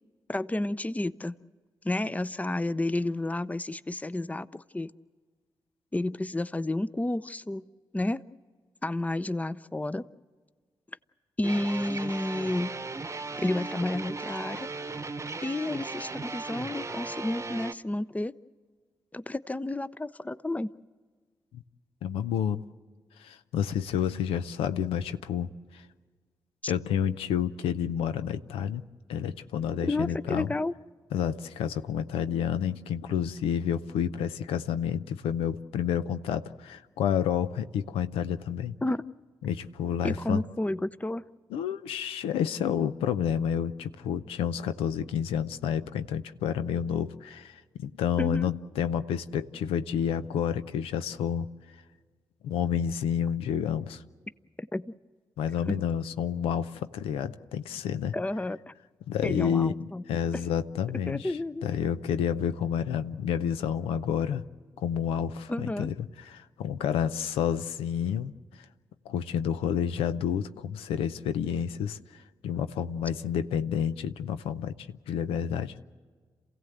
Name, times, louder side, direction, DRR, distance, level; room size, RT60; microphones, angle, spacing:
voice 1, 0.3-1.4 1.8-4.9 5.9-7.6 7.9-8.2 8.8-10.1 11.4-12.8 13.4-14.7 15.4-18.3 19.1-20.7 26.6-26.7 29.9-30.7 38.8-39.0 40.0-41.2 48.2-48.5 54.6-54.9 55.7-55.8 58.1-58.7 59.2-60.0 61.1-61.7 65.5-65.9, left 2 dB, 15° left, 16 dB, 0.6 m, -31 dB
sound 1, 11.4-17.7, right 3 dB, 30° right, 0.9 m, -37 dB
voice 2, 22.0-22.6 23.2-25.5 25.7-25.8 26.7-28.8 29.1-30.5 31.1-38.7 39.4-40.4 41.5-51.5 52.4-54.0 55.4-58.1 59.1-64.4 64.8-68.3 69.1-72.0 72.4-74.7 75.1-75.8, left 8 dB, 90° left, 11 dB, 0.5 m, -29 dB
27.5 x 16.0 x 8.0 m, 1.5 s
supercardioid pair, 45°, 9 cm